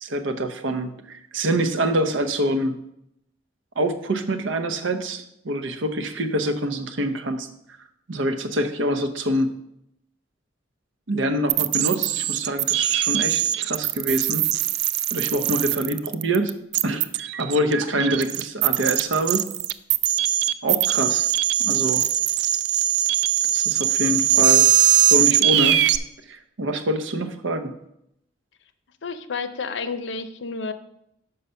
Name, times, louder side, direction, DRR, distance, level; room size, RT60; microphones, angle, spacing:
voice 1, 0.0-2.8 3.8-7.5 8.1-9.5 11.1-14.5 15.1-16.5 16.8-19.5 20.6-21.3 21.6-22.0 23.5-24.7 25.1-25.8 26.3-27.7, right 1 dB, 85° right, 8 dB, 0.8 m, -25 dB
sound 1, 11.5-26.0, right 12 dB, 60° right, 0.3 m, -21 dB
voice 2, 17.9-18.3 29.0-30.7, left 4 dB, 75° left, 11 dB, 0.6 m, -31 dB
6.5 x 5.6 x 5.6 m, 0.79 s
head